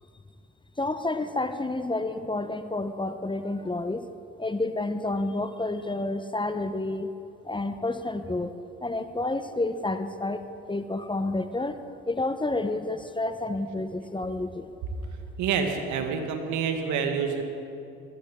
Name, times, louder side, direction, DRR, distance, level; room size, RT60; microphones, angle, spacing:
voice 1, 0.8-4.1 4.4-7.1 7.4-8.5 8.8-10.4 10.7-11.8 12.1-14.7, left 2 dB, 15° left, 10 dB, 1.0 m, -29 dB
voice 2, 15.4-17.4, right 6 dB, 70° right, 5 dB, 1.8 m, -27 dB
20.0 x 17.0 x 3.8 m, 2.7 s
hypercardioid pair, 55°, 30 cm